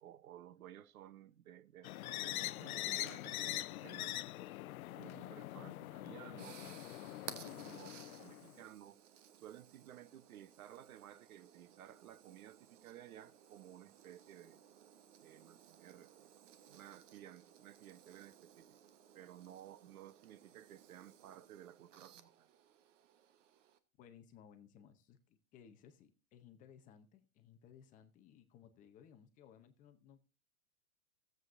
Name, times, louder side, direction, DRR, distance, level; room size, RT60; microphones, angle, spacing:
voice 1, 0.0-4.2 5.0-7.9 8.2-9.0 9.4-14.6 15.2-16.3 16.7-18.8 19.1-22.5, right 11 dB, 75° right, 0.9 m, -56 dB
sound 1, 1.8-8.6, left 15 dB, 75° left, 0.5 m, -43 dB
sound 2, 5.8-23.8, right 9 dB, 60° right, 1.2 m, -58 dB
voice 2, 24.0-30.2, left 8 dB, 20° left, 0.7 m, -61 dB
16.5 x 7.9 x 2.6 m
hypercardioid pair, 145°, 43 cm